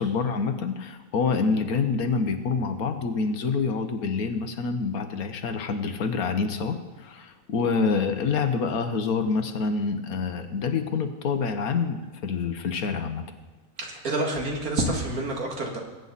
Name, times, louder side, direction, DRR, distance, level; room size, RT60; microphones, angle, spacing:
voice 1, 0.0-13.3, left 5 dB, 75° left, 8 dB, 1.5 m, -27 dB
voice 2, 13.8-15.8, right 2 dB, 75° right, 1 dB, 2.3 m, -28 dB
20.5 x 9.1 x 4.1 m, 1.3 s
omnidirectional pair, 1.6 m